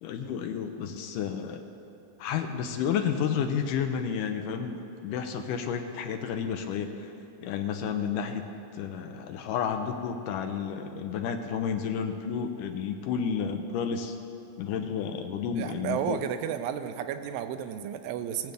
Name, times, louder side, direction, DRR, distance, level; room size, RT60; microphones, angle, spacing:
voice 1, 0.0-1.6 2.2-7.1 7.4-8.4 8.7-14.2 14.6-16.2, left 7 dB, 80° left, 6 dB, 2.1 m, -31 dB
voice 2, 15.6-18.5, right 9 dB, 85° right, 9 dB, 2.2 m, -32 dB
21.0 x 7.7 x 3.5 m, 2.9 s
omnidirectional pair, 4.0 m